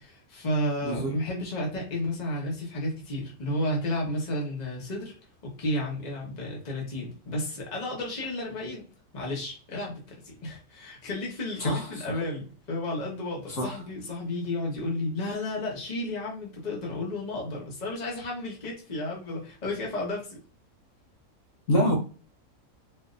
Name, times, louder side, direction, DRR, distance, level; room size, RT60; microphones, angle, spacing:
voice 1, 0.0-5.1 5.6-8.9 9.1-20.4, left 1 dB, 30° left, -2 dB, 1.2 m, -32 dB
voice 2, 0.8-1.1 11.6-12.1 13.5-13.8 21.7-21.9, equal, 60° left, -1 dB, 1.4 m, -26 dB
4.2 x 2.7 x 2.5 m, 0.37 s
omnidirectional pair, 1.5 m